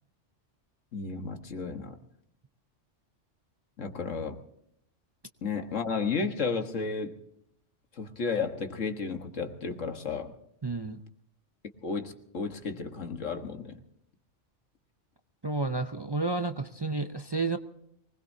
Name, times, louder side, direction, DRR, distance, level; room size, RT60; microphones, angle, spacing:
voice 1, 0.9-2.0 3.8-4.4 5.4-7.2 8.0-10.4 11.8-13.8, left 5 dB, 90° left, 5 dB, 1.9 m, -33 dB
voice 2, 10.6-11.0 15.4-17.6, right 3 dB, 30° right, 7 dB, 0.5 m, -31 dB
24.0 x 20.0 x 2.8 m, 0.76 s
omnidirectional pair, 1.3 m